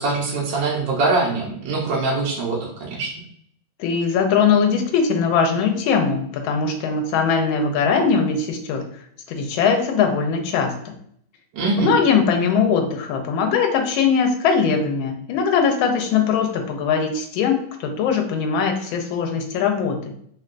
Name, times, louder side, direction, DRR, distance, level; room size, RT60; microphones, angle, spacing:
voice 1, 0.0-3.1 11.5-11.9, right 3 dB, 70° right, -3 dB, 1.3 m, -23 dB
voice 2, 3.8-8.8 9.3-10.7 11.8-20.1, left 6 dB, 85° left, 4 dB, 1.4 m, -20 dB
3.4 x 2.2 x 2.4 m, 0.66 s
omnidirectional pair, 2.1 m